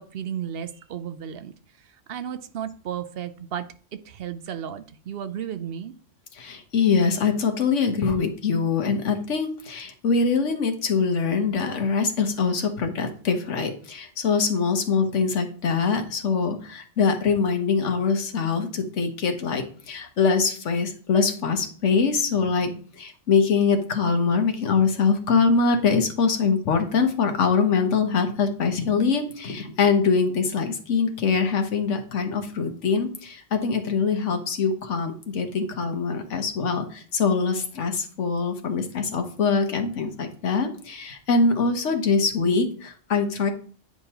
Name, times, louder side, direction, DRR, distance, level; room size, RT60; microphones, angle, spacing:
voice 1, 0.0-1.5 2.1-3.7 4.1-5.9, right 9 dB, 60° right, 11 dB, 0.7 m, -33 dB
voice 2, 6.4-43.5, left 5 dB, 70° left, 5 dB, 1.4 m, -23 dB
9.4 x 5.2 x 2.9 m, 0.44 s
omnidirectional pair, 1.3 m